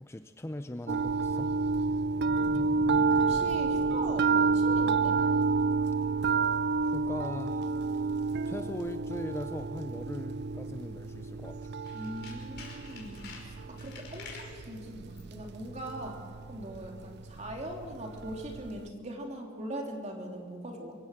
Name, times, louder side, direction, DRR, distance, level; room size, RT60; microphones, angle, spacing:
voice 1, 0.0-1.5 6.8-7.7 7.9-8.1 8.4-11.7, left 1 dB, 10° left, 9 dB, 0.5 m, -40 dB
sound 1, 0.9-18.9, right 4 dB, 50° right, 0.5 m, -30 dB
sound 2, 2.1-5.4, equal, 10° right, 1.0 m, -44 dB
voice 2, 3.3-5.1 11.9-16.2 16.5-21.0, equal, 35° right, 2 dB, 3.2 m, -40 dB
Tools, 11.8-14.6 15.1-15.4 15.7-15.8, left 5 dB, 55° left, 5.5 m, -48 dB
25.5 x 16.0 x 6.6 m, 2.2 s
head